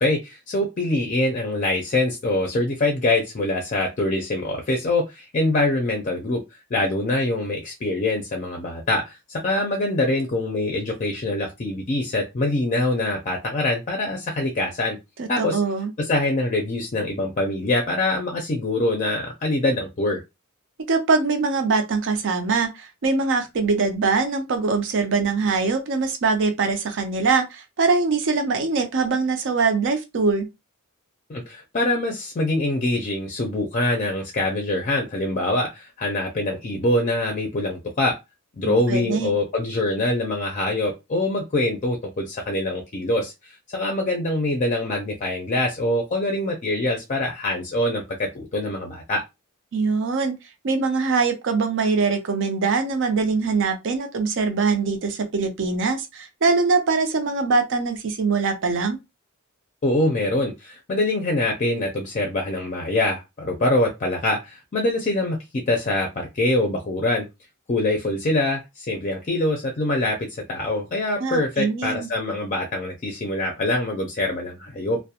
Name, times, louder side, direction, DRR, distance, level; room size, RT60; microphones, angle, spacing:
voice 1, 0.0-6.4 6.7-15.0 15.3-15.6 16.0-20.2 31.3-38.2 38.6-49.2 59.8-67.3 67.7-75.0, left 2 dB, 35° left, 0.5 m, -24 dB
voice 2, 15.2-15.9 20.9-30.5 38.6-39.3 49.7-50.3 50.6-59.0 71.2-72.1, right 4 dB, 60° right, 0.5 m, -23 dB
2.3 x 2.1 x 2.7 m
head